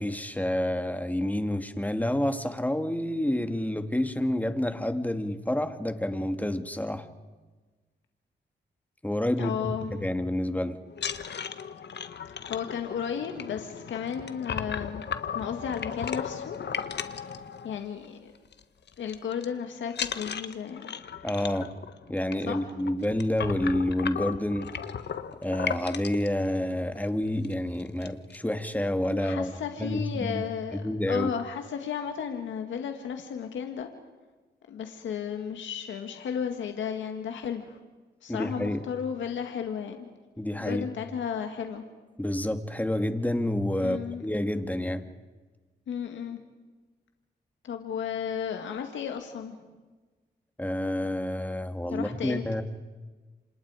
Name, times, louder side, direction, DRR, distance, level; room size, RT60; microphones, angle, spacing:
voice 1, 0.0-7.1 9.0-10.8 21.2-21.7 22.1-24.7 25.4-29.5 29.8-30.4 30.8-31.3 38.3-38.8 40.4-40.9 42.2-45.0 50.6-52.6, left 1 dB, 10° left, 2.6 m, -29 dB
voice 2, 9.4-10.0 12.4-15.0 15.3-16.6 17.6-18.3 19.0-20.9 22.5-22.6 29.2-33.9 34.7-37.8 38.2-40.0 40.6-41.8 43.8-44.3 45.9-46.4 47.6-49.6 51.9-52.4, left 7 dB, 85° left, 1.9 m, -34 dB
sound 1, 10.9-18.1 18.4-18.6 18.9-19.5 19.9-26.3 27.0-27.1 27.4-27.5 27.8-28.4, left 7 dB, 65° left, 1.5 m, -36 dB
29.5 x 26.5 x 5.0 m
cardioid pair, 55°, 19 cm